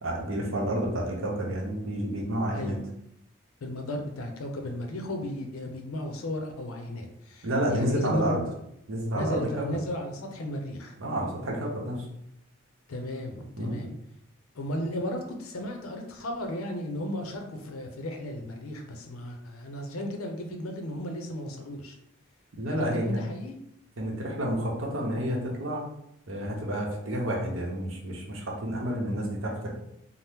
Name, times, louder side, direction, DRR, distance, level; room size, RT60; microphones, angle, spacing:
voice 1, 0.0-2.8 7.4-8.4 8.9-9.6 11.0-12.1 13.6-13.8 22.6-23.3 24.0-25.8 26.3-29.7, right 1 dB, 65° right, -1 dB, 0.7 m, -30 dB
voice 2, 3.6-8.3 9.1-11.0 12.9-13.9 14.6-22.0 22.7-23.6, left 1 dB, 80° left, 4 dB, 0.5 m, -35 dB
2.8 x 2.0 x 3.4 m, 0.78 s
head